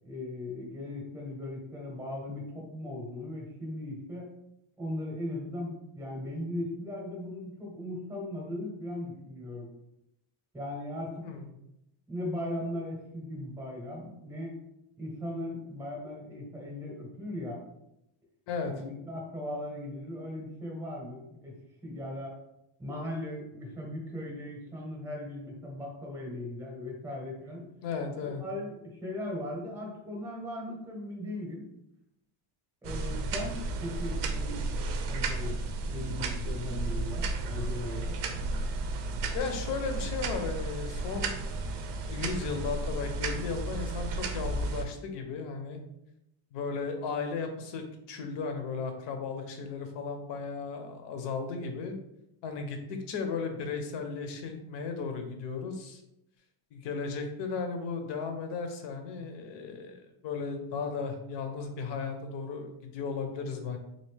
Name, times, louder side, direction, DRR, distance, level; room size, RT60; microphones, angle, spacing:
voice 1, 0.0-4.3 4.8-9.7 10.5-11.4 12.1-14.5 15.0-17.6 18.7-21.5 21.8-22.4 22.8-27.7 28.2-31.7 32.8-34.7 35.1-38.1, left 1 dB, 5° right, -1 dB, 0.8 m, -38 dB
voice 2, 27.8-28.4 39.3-41.4 42.1-45.8 46.5-52.0 52.4-52.8 53.1-56.0 56.7-63.8, left 5 dB, 60° left, 5 dB, 0.8 m, -35 dB
sound 1, 32.8-44.9, right 2 dB, 60° right, 0.6 m, -33 dB
4.2 x 2.7 x 3.2 m, 0.82 s
cardioid pair, 165°, 49 cm